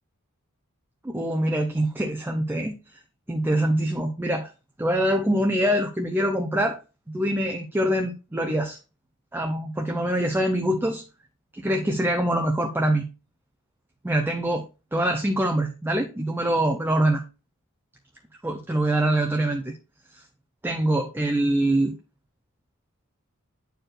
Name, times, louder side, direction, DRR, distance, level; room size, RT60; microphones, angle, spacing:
voice 1, 1.0-2.8 3.3-4.5 4.8-6.8 7.1-8.8 9.3-11.0 11.5-13.1 14.0-14.7 14.9-17.2 18.4-19.7 20.6-22.0, right 1 dB, 10° right, 3 dB, 0.5 m, -24 dB
9.2 x 4.4 x 2.5 m, 0.30 s
head